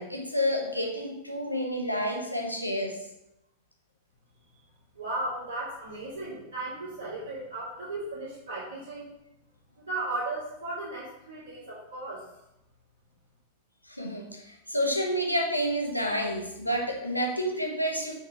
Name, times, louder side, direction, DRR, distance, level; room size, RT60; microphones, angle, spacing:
voice 1, 0.0-3.0 13.9-18.1, equal, 90° left, 1 dB, 1.0 m, -29 dB
voice 2, 5.0-9.1 9.8-12.2, right 2 dB, 65° right, -10 dB, 2.2 m, -35 dB
5.6 x 3.9 x 4.9 m, 0.86 s
figure-of-eight pair, 90°, 0 cm